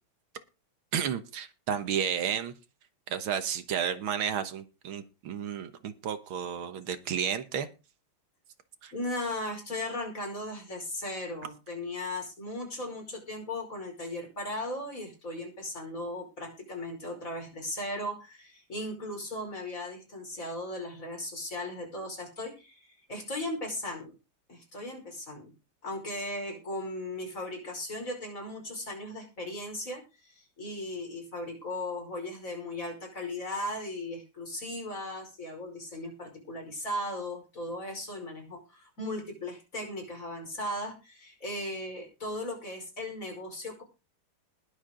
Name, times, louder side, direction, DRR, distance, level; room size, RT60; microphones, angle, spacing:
voice 1, 0.9-2.5 3.1-7.7 8.8-8.9, right 8 dB, 80° right, 9 dB, 2.0 m, -32 dB
voice 2, 8.9-24.1 24.5-25.5 25.8-43.8, left 1 dB, 40° left, 2 dB, 5.5 m, -37 dB
20.5 x 7.3 x 3.8 m, 0.30 s
omnidirectional pair, 2.2 m